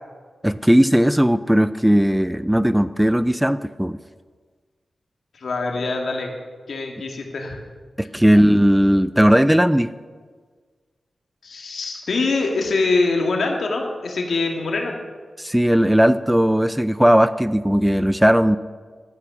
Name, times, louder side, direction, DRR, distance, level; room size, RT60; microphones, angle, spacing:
voice 1, 0.4-4.0 8.0-9.9 15.4-18.6, equal, 5° right, 14 dB, 0.4 m, -17 dB
voice 2, 5.3-6.3 6.7-7.6 11.4-15.0, left 3 dB, 75° left, 1 dB, 1.9 m, -23 dB
12.0 x 8.3 x 6.1 m, 1.5 s
cardioid pair, 65°, 0 cm